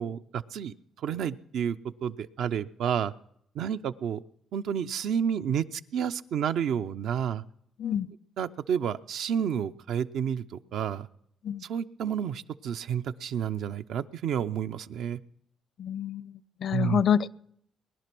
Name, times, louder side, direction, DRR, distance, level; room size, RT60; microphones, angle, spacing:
voice 1, 0.0-3.1 3.5-4.2 4.5-7.4 8.4-11.1 11.6-15.2 16.7-17.0, right 8 dB, 75° right, 10 dB, 0.6 m, -30 dB
voice 2, 15.8-17.3, left 8 dB, 60° left, 20 dB, 0.5 m, -27 dB
20.5 x 11.0 x 6.0 m, 0.72 s
cardioid pair, 90°, 0 cm